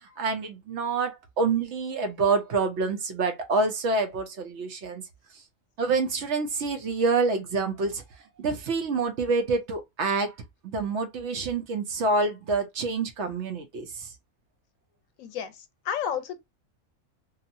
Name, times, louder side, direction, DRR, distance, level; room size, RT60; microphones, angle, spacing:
voice 1, 0.0-5.0 5.3-5.4 5.8-8.0 8.4-10.4 10.6-14.1, right 4 dB, 65° right, 0.9 m, -27 dB
voice 2, 15.2-16.4, left 8 dB, 80° left, 1.0 m, -32 dB
2.8 x 2.3 x 2.5 m
omnidirectional pair, 1.4 m